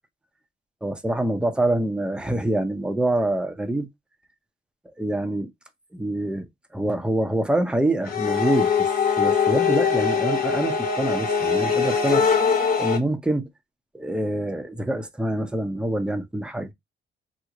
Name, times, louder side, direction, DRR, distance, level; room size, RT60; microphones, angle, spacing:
voice 1, 0.8-3.9 5.0-5.5 5.9-6.5 6.7-8.9 9.2-12.2 12.8-13.5 13.9-16.7, right 1 dB, 5° right, 0.6 m, -25 dB
sound 1, 8.1-13.0, left 6 dB, 45° left, 0.9 m, -22 dB
3.0 x 2.1 x 3.6 m
cardioid pair, 90°, 20 cm